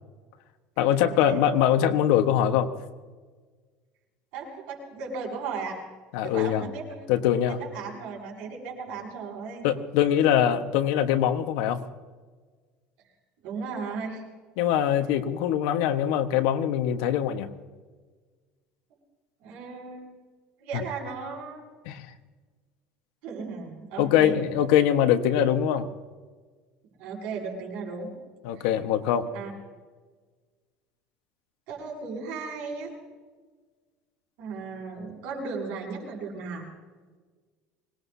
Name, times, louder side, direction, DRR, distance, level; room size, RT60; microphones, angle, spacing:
voice 1, 0.8-2.7 6.1-6.7 7.1-7.6 9.6-11.8 14.6-17.5 20.7-20.8 21.8-22.1 24.0-25.9 28.4-29.3, left 10 dB, 75° left, 7 dB, 1.3 m, -23 dB
voice 2, 4.3-5.8 6.2-7.1 7.5-9.6 13.4-14.2 19.4-20.1 20.6-21.6 23.2-24.4 27.0-28.1 28.6-28.7 29.3-29.5 31.7-32.9 34.4-36.7, right 4 dB, 60° right, -1 dB, 6.9 m, -36 dB
25.0 x 19.5 x 2.8 m, 1.4 s
cardioid pair, 175°, 3 cm